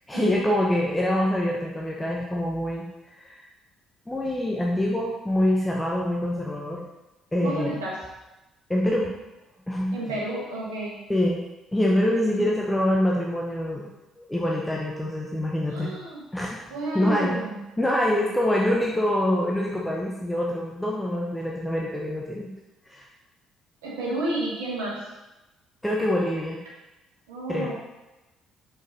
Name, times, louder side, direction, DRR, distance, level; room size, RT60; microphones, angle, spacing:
voice 1, 0.1-3.4 4.1-6.8 7.3-7.7 8.7-9.1 9.7-9.9 11.1-11.4 11.7-13.9 14.2-15.9 16.3-16.6 16.9-17.3 17.8-22.5 22.9-23.1 25.8-26.6 27.5-27.7, left 1 dB, 10° left, -3 dB, 1.0 m, -25 dB
voice 2, 7.4-8.0 9.9-11.0 12.3-12.5 15.7-16.2 16.7-17.6 23.8-25.0 27.3-27.7, right 2 dB, 70° right, -5 dB, 1.3 m, -31 dB
5.5 x 5.3 x 4.1 m, 1.0 s
figure-of-eight pair, 45°, 0 cm